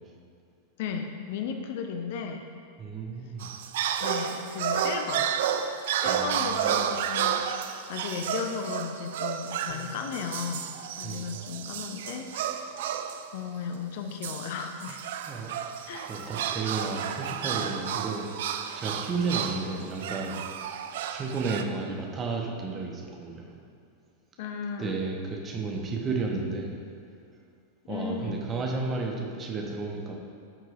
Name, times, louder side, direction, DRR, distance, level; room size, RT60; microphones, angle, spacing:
voice 1, 0.8-2.5 4.0-5.3 6.0-7.5 7.7-10.7 11.0-12.3 12.8-12.9 13.3-15.2 15.9-16.1 16.9-17.0 24.4-25.0 27.8-28.4, left 6 dB, 50° left, 5 dB, 0.6 m, -35 dB
voice 2, 2.8-3.5 6.1-6.8 11.0-11.5 15.3-15.5 16.1-20.5 21.1-23.5 24.8-26.7 27.9-30.2, right 4 dB, 25° right, -1 dB, 1.2 m, -33 dB
sound 1, 3.4-13.3 14.2-21.6, right 8 dB, 55° right, 0.4 m, -31 dB
sound 2, 9.7-13.0 13.4-13.5, left 2 dB, ahead, 0.9 m, -54 dB
14.0 x 6.2 x 2.6 m, 2.3 s
figure-of-eight pair, 90°, 0 cm